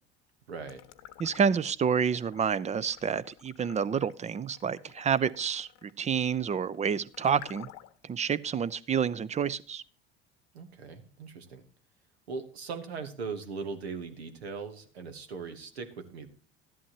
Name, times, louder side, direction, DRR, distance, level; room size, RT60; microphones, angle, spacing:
voice 1, 0.5-0.8 10.5-11.6 12.3-16.3, right 5 dB, 80° right, 1.3 m, -39 dB
sound 1, 0.6-1.8 2.2-8.1, left 12 dB, 60° left, 0.9 m, -52 dB
voice 2, 1.2-7.7 8.0-9.8, right 7 dB, 20° right, 0.5 m, -29 dB
13.0 x 11.0 x 2.9 m
figure-of-eight pair, 65°, 31 cm